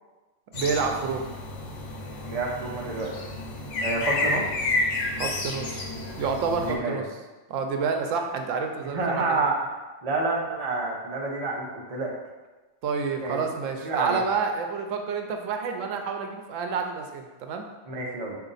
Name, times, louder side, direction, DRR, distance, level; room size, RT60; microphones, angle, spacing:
sound 1, 0.5-6.7, left 2 dB, 75° left, 1.1 m, -30 dB
voice 1, 0.5-1.3 5.1-5.9 6.1-7.0 7.5-9.2 12.8-17.7, right 5 dB, 90° right, 4 dB, 0.9 m, -29 dB
voice 2, 2.2-3.1 3.8-4.4 6.6-7.0 8.9-9.5 10.0-12.1 13.2-13.4 13.8-14.2 17.9-18.4, right 3 dB, 35° right, -3 dB, 0.8 m, -28 dB
4.9 x 2.7 x 3.9 m, 1.2 s
omnidirectional pair, 1.3 m